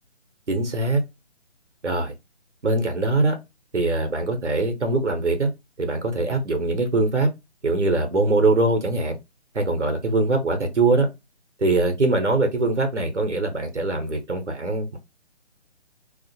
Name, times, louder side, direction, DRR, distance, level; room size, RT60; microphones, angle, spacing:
voice 1, 0.5-1.0 1.8-2.1 2.6-3.4 3.7-5.5 5.8-7.3 7.6-9.2 9.5-11.1 11.6-15.0, right 2 dB, 85° right, 0.8 m, -22 dB
2.4 x 2.1 x 2.6 m
figure-of-eight pair, 145°, 34 cm